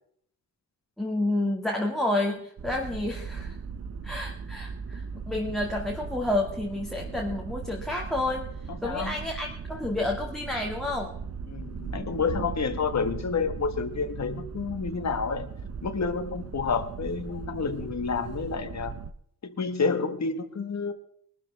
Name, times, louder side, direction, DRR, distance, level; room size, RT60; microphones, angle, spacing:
voice 1, 1.0-3.6 4.0-8.5 8.8-11.1, left 2 dB, ahead, -1 dB, 2.1 m, -30 dB
sound 1, 2.6-19.1, right 5 dB, 40° right, 0.8 m, -38 dB
voice 2, 8.7-9.1 11.5-15.5 15.8-19.0 19.4-20.9, left 5 dB, 45° left, 9 dB, 1.6 m, -29 dB
22.5 x 13.0 x 3.5 m, 0.65 s
wide cardioid pair, 165°, 38 cm